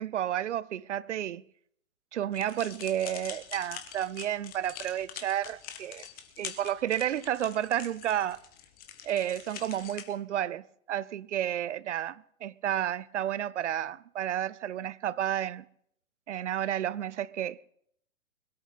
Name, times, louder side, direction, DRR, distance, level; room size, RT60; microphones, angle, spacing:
voice 1, 0.0-1.4 2.1-6.0 6.4-8.4 9.0-15.7 16.3-17.6, right 11 dB, 60° right, 0.6 m, -31 dB
sound 1, 2.3-10.0, left 10 dB, 20° left, 1.5 m, -44 dB
21.0 x 13.0 x 4.1 m
figure-of-eight pair, 120°, 41 cm